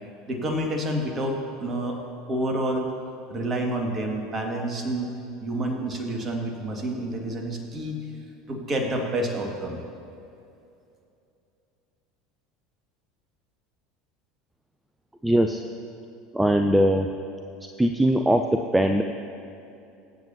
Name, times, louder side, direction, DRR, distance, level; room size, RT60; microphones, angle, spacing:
voice 1, 0.3-2.0 2.3-2.9 3.3-5.1 5.4-8.0 8.5-9.8, right 1 dB, 30° right, 2 dB, 1.9 m, -28 dB
voice 2, 15.2-15.6 16.3-17.1 17.8-19.0, right 1 dB, 5° right, 5 dB, 0.5 m, -21 dB
22.0 x 8.6 x 2.8 m, 2.6 s
figure-of-eight pair, 70°, 0 cm